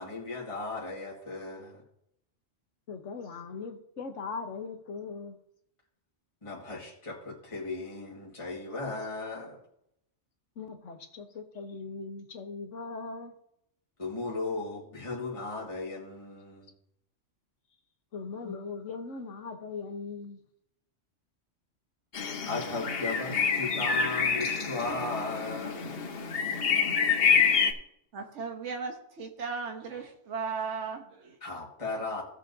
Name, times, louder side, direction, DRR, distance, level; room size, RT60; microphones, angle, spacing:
voice 1, 0.0-1.8 6.4-9.6 14.0-16.7 18.4-18.6 22.5-26.0 31.4-32.2, left 3 dB, 25° left, -4 dB, 1.9 m, -36 dB
voice 2, 2.9-5.4 10.6-13.3 18.1-20.4, left 4 dB, 80° left, 6 dB, 1.4 m, -39 dB
sound 1, 22.1-27.7, left 6 dB, 55° left, 1.1 m, -27 dB
voice 3, 28.1-31.4, right 5 dB, 75° right, 4 dB, 1.3 m, -36 dB
16.5 x 6.9 x 2.7 m, 0.76 s
omnidirectional pair, 1.2 m